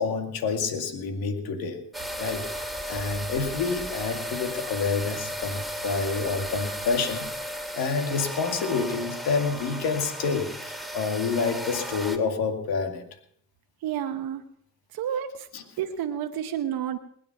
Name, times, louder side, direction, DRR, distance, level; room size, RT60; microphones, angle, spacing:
voice 1, 0.0-1.8 2.2-7.3 7.8-13.0 15.5-15.6, left 5 dB, 85° left, 5 dB, 2.3 m, -28 dB
sound 1, 1.9-12.2, equal, ahead, 2.4 m, -35 dB
voice 2, 13.8-14.4 14.9-15.5 15.8-17.0, right 9 dB, 80° right, 7 dB, 1.0 m, -30 dB
20.5 x 9.3 x 5.9 m, 0.66 s
supercardioid pair, 55°, 36 cm